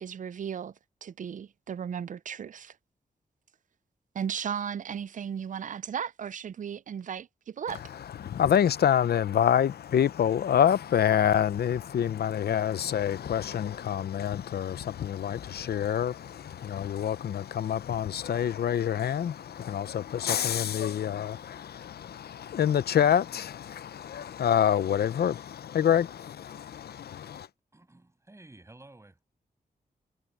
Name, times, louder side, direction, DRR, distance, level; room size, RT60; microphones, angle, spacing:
voice 1, 0.0-0.7 1.0-2.7 4.1-7.8, right 8 dB, 55° right, 0.4 m, -35 dB
voice 2, 7.7-27.5, left 9 dB, 80° left, 0.7 m, -27 dB
voice 3, 27.7-29.2, right 2 dB, 15° right, 6.8 m, -52 dB
wide cardioid pair, 115°, 16 cm